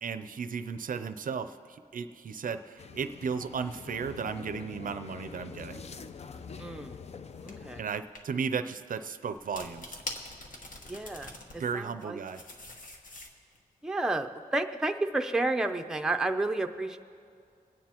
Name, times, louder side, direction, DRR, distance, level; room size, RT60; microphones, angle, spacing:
voice 1, 0.0-5.8 7.8-10.0 11.6-12.4, right 6 dB, 65° right, 11 dB, 0.5 m, -35 dB
sound 1, 2.8-7.8, left 5 dB, 45° left, 0.4 m, -45 dB
sound 2, 6.5-6.7 7.5-7.6 7.9-8.2 9.4-11.6 12.0-13.6, left 2 dB, 65° left, 1.3 m, -43 dB
voice 2, 6.6-7.0 7.4-7.8 10.9-12.2 13.8-17.0, right 2 dB, 5° right, 5 dB, 0.5 m, -31 dB
25.0 x 9.5 x 2.9 m, 2.3 s
wide cardioid pair, 115°, 15 cm